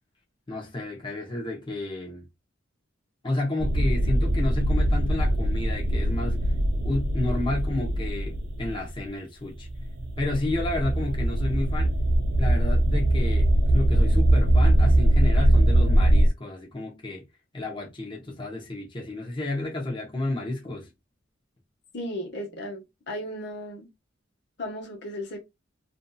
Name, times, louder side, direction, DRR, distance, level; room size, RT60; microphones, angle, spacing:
voice 1, 0.5-2.2 3.2-6.4 6.8-9.7 10.2-11.9 12.4-17.2 17.5-20.9, left 2 dB, 25° left, 0.8 m, -31 dB
sound 1, 3.6-9.0 9.5-16.3, right 1 dB, 80° right, 0.6 m, -22 dB
voice 2, 21.9-23.9 24.6-25.4, left 1 dB, 60° left, 1.1 m, -35 dB
2.6 x 2.6 x 2.2 m
head